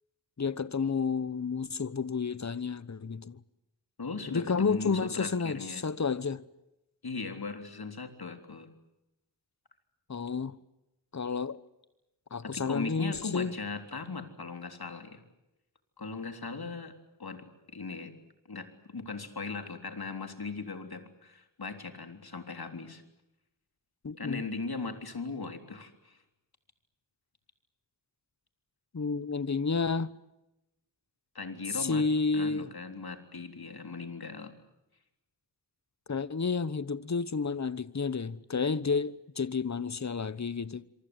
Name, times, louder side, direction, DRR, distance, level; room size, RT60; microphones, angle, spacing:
voice 1, 0.4-3.4 4.3-6.4 10.1-10.6 11.1-11.6 12.3-13.5 24.0-24.4 28.9-30.2 31.7-32.7 36.1-40.9, left 5 dB, 40° left, 1.1 m, -31 dB
voice 2, 4.0-5.8 7.0-8.7 12.4-15.2 16.0-18.1 18.5-23.0 24.2-26.2 31.3-32.0 32.3-34.5, left 4 dB, 60° left, 3.7 m, -39 dB
26.5 x 25.0 x 8.0 m
wide cardioid pair, 70°, 42 cm